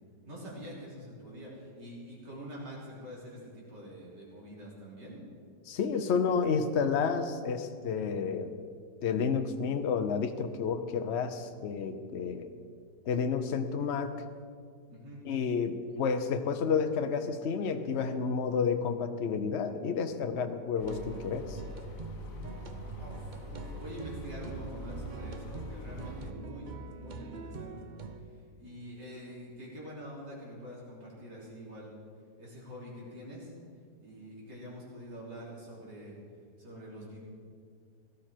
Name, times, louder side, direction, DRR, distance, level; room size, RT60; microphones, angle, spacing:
voice 1, 0.3-5.2 14.9-15.2 23.0-27.9 28.6-31.9 32.4-33.5 34.0-36.1 36.6-37.2, equal, 80° right, -5 dB, 4.2 m, -45 dB
voice 2, 5.7-8.5 9.0-12.5 13.1-14.1 15.2-21.6, left 6 dB, 50° left, 7 dB, 0.9 m, -30 dB
sound 1, 20.8-26.3, left 1 dB, 70° left, 1.6 m, -44 dB
sound 2, 20.8-28.2, right 5 dB, 65° right, 0.4 m, -44 dB
17.5 x 13.0 x 4.5 m, 2.2 s
omnidirectional pair, 1.8 m